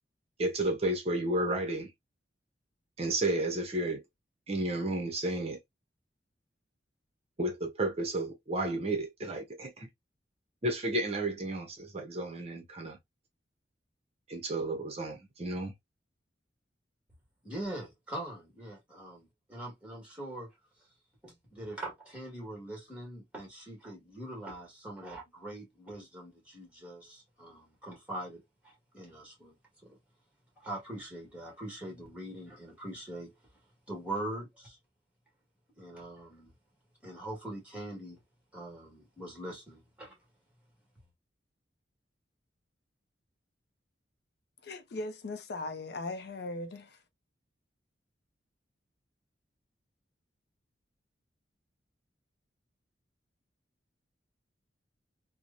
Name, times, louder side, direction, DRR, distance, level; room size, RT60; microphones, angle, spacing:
voice 1, 0.4-1.9 3.0-4.0 4.5-5.6 7.4-9.9 10.6-13.0 14.3-15.7, right 1 dB, 35° right, 0.6 m, -32 dB
voice 2, 17.4-20.5 21.2-29.6 29.8-30.0 30.6-33.3 33.9-34.8 35.8-36.5 37.0-38.2 38.5-40.2, right 1 dB, 5° right, 1.3 m, -42 dB
voice 3, 44.6-47.0, left 2 dB, 60° left, 0.5 m, -39 dB
2.9 x 2.0 x 2.4 m
head